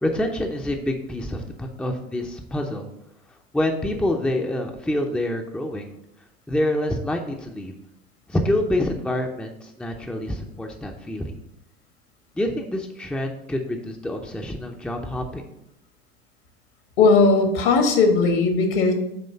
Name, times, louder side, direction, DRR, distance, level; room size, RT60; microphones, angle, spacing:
voice 1, 0.0-2.9 3.5-5.9 6.5-7.7 8.3-11.3 12.4-15.4, left 1 dB, 5° left, 3 dB, 0.7 m, -26 dB
voice 2, 17.0-18.9, left 4 dB, 60° left, 4 dB, 1.7 m, -17 dB
8.6 x 3.1 x 5.4 m, 0.82 s
hypercardioid pair, 75°, 31 cm